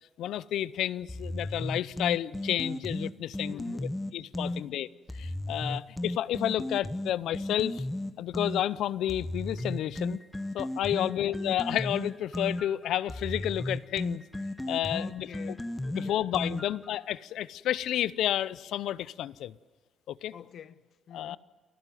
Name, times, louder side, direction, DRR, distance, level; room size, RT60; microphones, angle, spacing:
voice 1, 0.2-3.6 4.1-4.9 5.1-7.8 8.2-10.2 10.5-14.2 14.7-15.3 15.9-19.5 20.1-20.3 21.1-21.4, left 12 dB, 80° left, 0.6 m, -31 dB
sound 1, 1.1-4.6 5.1-8.6 9.1-16.9, left 1 dB, 10° left, 1.1 m, -35 dB
voice 2, 3.5-3.9 4.4-4.8 5.6-5.9 10.9-11.2 14.9-16.2 16.5-16.7 20.3-21.4, left 8 dB, 60° left, 0.9 m, -47 dB
29.0 x 12.0 x 9.3 m
cardioid pair, 90°, 0 cm